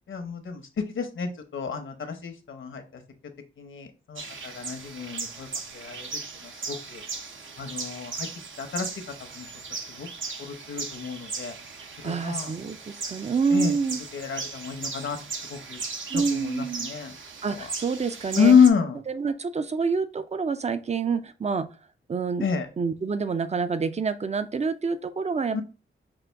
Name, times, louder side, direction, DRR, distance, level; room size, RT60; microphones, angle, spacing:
voice 1, 0.1-3.0 3.6-5.5 5.7-6.1 6.4-7.0 7.6-8.3 8.6-8.9 9.2-10.1 10.4-11.5 12.0-12.5 13.5-13.8 14.1-15.2 15.5-15.8 16.1-17.1 17.5-17.7 18.4-19.0 22.4-22.7 25.5-25.6, left 6 dB, 70° left, 6 dB, 0.8 m, -27 dB
sound 1, 4.2-18.7, right 4 dB, 70° right, 0.7 m, -37 dB
voice 2, 12.0-14.0 16.1-16.9 17.4-18.5 19.2-21.7 22.1-22.5 22.8-25.6, right 5 dB, 35° right, 11 dB, 0.4 m, -27 dB
5.4 x 2.5 x 3.4 m, 0.34 s
wide cardioid pair, 80°, 21 cm